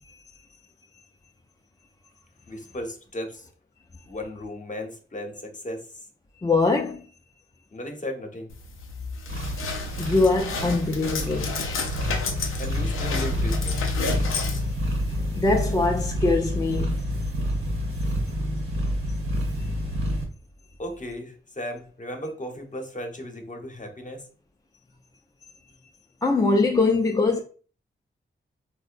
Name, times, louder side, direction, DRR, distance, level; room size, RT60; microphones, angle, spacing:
voice 1, 2.5-3.5 4.0-5.9 7.7-8.5 12.6-13.8 20.8-24.3, left 1 dB, 40° left, 0.8 m, -35 dB
voice 2, 6.4-7.1 10.0-11.6 15.4-17.0 26.2-27.4, left 3 dB, 20° left, 0.4 m, -23 dB
sound 1, 8.5-15.9, left 4 dB, 80° left, 0.5 m, -32 dB
sound 2, 9.3-20.2, equal, 85° right, 0.9 m, -28 dB
3.6 x 2.1 x 2.5 m
cardioid pair, 50°, 21 cm